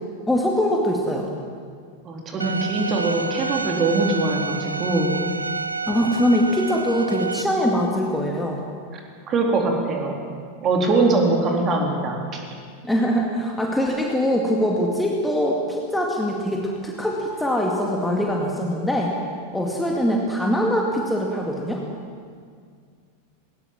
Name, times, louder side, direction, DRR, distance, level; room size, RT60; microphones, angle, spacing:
voice 1, 0.3-1.3 5.9-8.6 12.8-19.1 19.5-21.8, equal, 5° left, -1 dB, 2.2 m, -22 dB
voice 2, 2.0-5.2 8.9-9.0 9.3-10.1 10.6-12.4, right 3 dB, 30° right, 1 dB, 4.0 m, -22 dB
Bowed string instrument, 2.4-7.4, right 4 dB, 80° right, 0.7 m, -29 dB
19.0 x 19.0 x 7.5 m, 2.1 s
figure-of-eight pair, 90°, 0 cm